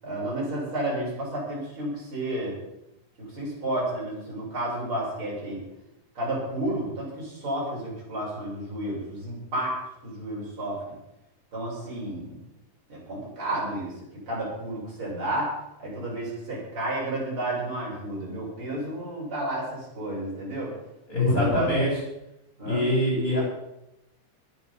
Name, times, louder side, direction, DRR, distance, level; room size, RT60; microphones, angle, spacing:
voice 1, 0.0-2.6 3.2-5.6 6.1-9.8 10.0-11.0 11.5-12.4 12.9-13.9 14.3-20.7 21.2-21.9 22.6-22.8, right 1 dB, 35° right, -5 dB, 7.9 m, -31 dB
voice 2, 21.1-21.9 22.6-23.4, left 1 dB, 20° left, -4 dB, 7.6 m, -23 dB
20.5 x 9.7 x 5.6 m, 0.88 s
omnidirectional pair, 4.0 m